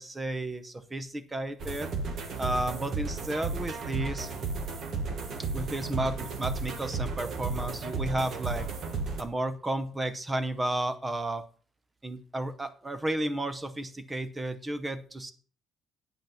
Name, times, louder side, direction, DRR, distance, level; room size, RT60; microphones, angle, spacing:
voice 1, 0.0-1.9 2.4-4.3 5.5-8.7 9.2-11.5 12.0-15.3, right 1 dB, 15° right, 12 dB, 0.7 m, -32 dB
sound 1, 1.6-9.2, right 4 dB, 45° right, 1.3 m, -34 dB
9.0 x 5.8 x 5.7 m, 0.43 s
cardioid pair, 160°, 0 cm